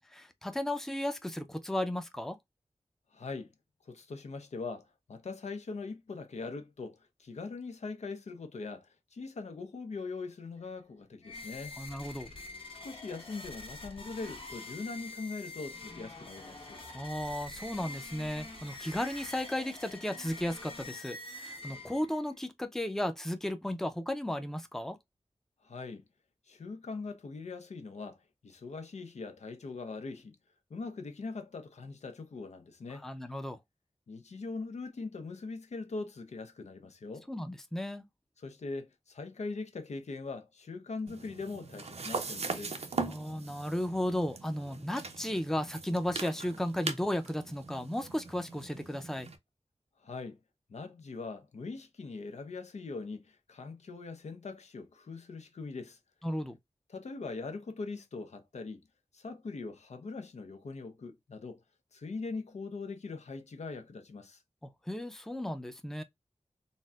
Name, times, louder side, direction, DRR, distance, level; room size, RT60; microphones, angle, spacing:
voice 1, 0.0-2.4 11.8-12.3 16.9-25.0 32.9-33.6 37.3-38.0 43.1-49.3 56.2-56.6 64.6-66.0, left 1 dB, 5° left, 0.5 m, -35 dB
voice 2, 3.1-3.5 3.8-11.8 12.8-16.8 25.6-26.0 26.5-30.4 30.7-33.1 34.1-37.3 38.4-42.9 50.0-50.4 50.7-56.0 56.9-58.8 59.1-61.6 61.9-64.4, left 3 dB, 80° left, 0.7 m, -41 dB
sound 1, 11.2-22.3, left 2 dB, 50° left, 1.3 m, -46 dB
sound 2, 41.1-49.4, right 4 dB, 65° right, 0.6 m, -40 dB
4.1 x 2.1 x 2.3 m
wide cardioid pair, 100°, 12 cm